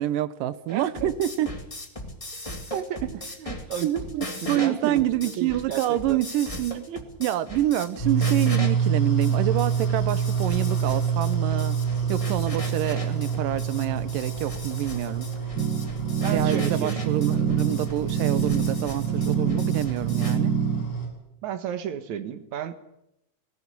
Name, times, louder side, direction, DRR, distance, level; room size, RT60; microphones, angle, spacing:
voice 1, 0.0-1.5 2.7-2.9 3.8-6.9 7.2-11.8 12.1-15.3 16.3-20.5, right 13 dB, 85° right, 2.5 m, -27 dB
sound 1, 0.7-20.4, left 1 dB, 15° left, 1.6 m, -39 dB
voice 2, 0.7-1.1 2.4-3.0 3.4-3.9 4.4-6.2 6.9-7.0 16.2-17.1 21.4-22.9, right 9 dB, 65° right, 2.7 m, -33 dB
sound 2, 8.0-21.1, right 6 dB, 80° left, 8.2 m, -27 dB
sound 3, 15.6-20.8, right 7 dB, 35° right, 2.8 m, -26 dB
18.5 x 17.0 x 9.6 m
omnidirectional pair, 3.8 m